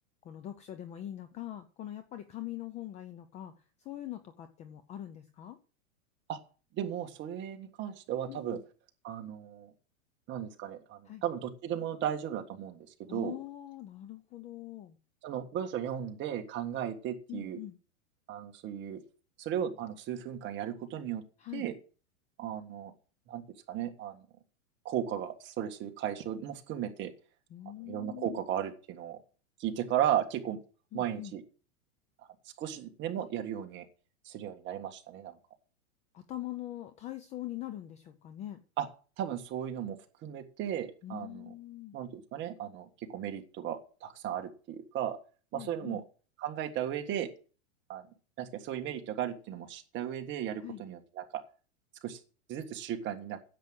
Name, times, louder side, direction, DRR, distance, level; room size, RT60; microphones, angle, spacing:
voice 1, 0.2-5.6 8.3-8.6 11.1-11.2 13.1-15.0 17.3-17.8 21.4-21.7 27.5-28.4 30.9-31.4 36.1-38.6 41.0-42.0 45.5-46.0 50.6-50.8, left 13 dB, 15° left, 11 dB, 0.5 m, -43 dB
voice 2, 6.7-8.6 9.0-9.7 10.3-13.4 15.2-17.6 18.3-19.0 19.4-21.2 21.5-21.8 22.4-22.9 23.3-23.4 23.7-24.2 24.9-27.1 27.8-29.2 29.6-30.6 30.9-31.4 32.6-33.8 34.3-35.4 38.8-38.9 39.2-40.0 40.2-41.5 41.9-45.2 45.5-46.0 46.4-47.3 47.9-48.1 48.4-51.4 52.0-52.2 52.5-53.4, right 10 dB, 25° right, 4 dB, 1.7 m, -35 dB
10.5 x 7.7 x 7.6 m, 0.37 s
supercardioid pair, 150°, 41 cm